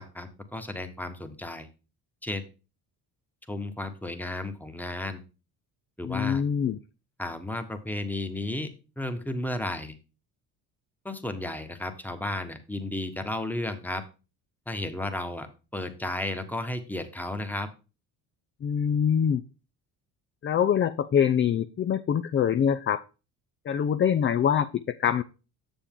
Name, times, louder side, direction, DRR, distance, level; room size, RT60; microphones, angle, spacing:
voice 1, 0.0-1.7 2.2-2.5 3.5-5.2 6.0-6.4 7.2-8.7 9.0-10.0 11.0-14.0 14.7-15.5 15.7-17.7, left 1 dB, 5° left, 8 dB, 1.2 m, -33 dB
voice 2, 6.0-6.8 18.6-19.4 20.4-23.0 23.7-25.2, left 8 dB, 30° left, 9 dB, 0.4 m, -24 dB
7.1 x 6.7 x 3.7 m, 0.32 s
supercardioid pair, 60°, 48 cm